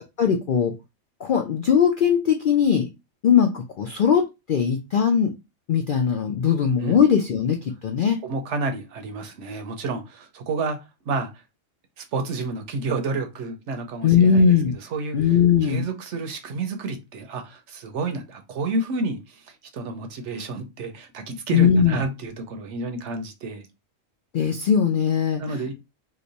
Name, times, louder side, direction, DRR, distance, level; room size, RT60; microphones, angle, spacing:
voice 1, 0.2-0.7 1.2-2.9 3.2-5.3 5.7-8.2 14.0-14.8 15.1-15.9 21.5-22.0 24.3-25.7, left 7 dB, 75° left, 0.4 m, -20 dB
voice 2, 8.2-10.8 11.0-11.4 12.0-15.3 15.6-23.7 25.4-25.7, right 3 dB, 65° right, 0.9 m, -30 dB
3.0 x 2.1 x 3.9 m
omnidirectional pair, 1.4 m